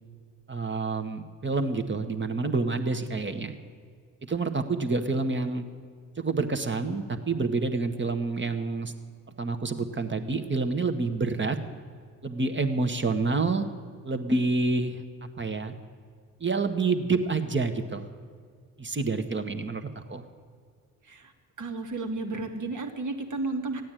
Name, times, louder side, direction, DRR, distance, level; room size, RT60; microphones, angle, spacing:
voice 1, 0.5-3.5 4.2-5.6 6.2-8.9 9.4-11.6 12.2-13.7 14.0-15.0 15.4-15.7 16.4-18.0 18.8-20.2, right 3 dB, 30° right, 7 dB, 1.6 m, -28 dB
voice 2, 21.6-23.8, right 3 dB, 50° right, 4 dB, 2.1 m, -32 dB
15.0 x 9.4 x 9.2 m, 2.1 s
hypercardioid pair, 45°, 38 cm